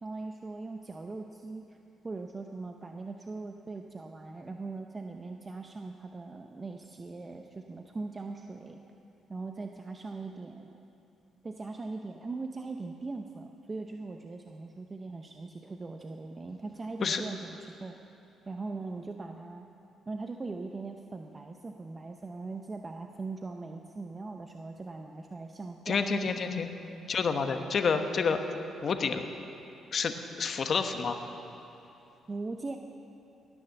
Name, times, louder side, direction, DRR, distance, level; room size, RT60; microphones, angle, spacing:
voice 1, 0.0-1.8 2.0-8.8 9.3-10.7 11.4-18.0 18.5-19.6 20.1-26.3 32.3-32.8, right 3 dB, 30° right, 4 dB, 0.7 m, -40 dB
voice 2, 25.9-26.7 27.1-28.4 28.8-29.2 29.9-31.2, left 5 dB, 50° left, 7 dB, 1.1 m, -29 dB
18.0 x 10.0 x 7.0 m, 2.9 s
cardioid pair, 90°, 0 cm